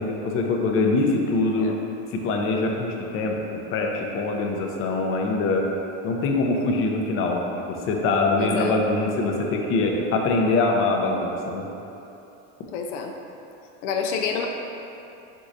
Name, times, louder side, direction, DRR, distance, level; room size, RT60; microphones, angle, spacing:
voice 1, 0.0-1.7 2.1-5.7 6.0-11.7, left 3 dB, 35° left, 1 dB, 0.5 m, -23 dB
voice 2, 8.4-8.8 12.7-13.1 13.8-14.5, left 6 dB, 85° left, 3 dB, 0.5 m, -28 dB
4.6 x 3.8 x 2.6 m, 2.9 s
supercardioid pair, 125°, 36 cm